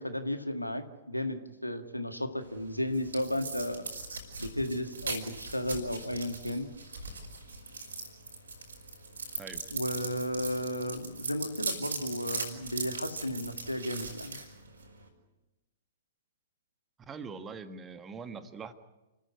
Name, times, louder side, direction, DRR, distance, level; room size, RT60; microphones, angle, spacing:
voice 1, 0.0-3.8 4.4-6.7 9.7-14.4, left 1 dB, 90° left, 7 dB, 1.9 m, -34 dB
sound 1, 2.4-15.1, right 3 dB, 70° right, 5.4 m, -40 dB
voice 2, 17.1-18.7, right 5 dB, 20° right, 10 dB, 1.5 m, -42 dB
29.5 x 15.0 x 9.4 m, 1.0 s
figure-of-eight pair, 110°, 0 cm